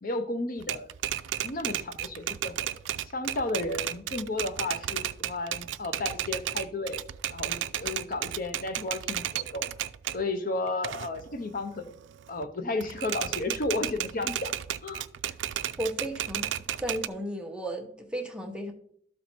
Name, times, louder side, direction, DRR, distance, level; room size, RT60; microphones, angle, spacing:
voice 1, 0.0-0.9 1.4-2.7 3.1-7.0 7.3-9.7 10.1-11.9 12.3-14.5 14.8-15.0, left 2 dB, 50° left, 8 dB, 0.8 m, -33 dB
Typewriter, 0.6-10.2 10.7-12.4 12.8-17.1, right 11 dB, 75° right, 0.4 m, -34 dB
voice 2, 15.6-16.5 16.8-18.7, right 1 dB, 5° right, 2 dB, 1.0 m, -34 dB
12.5 x 4.2 x 4.4 m, 0.64 s
head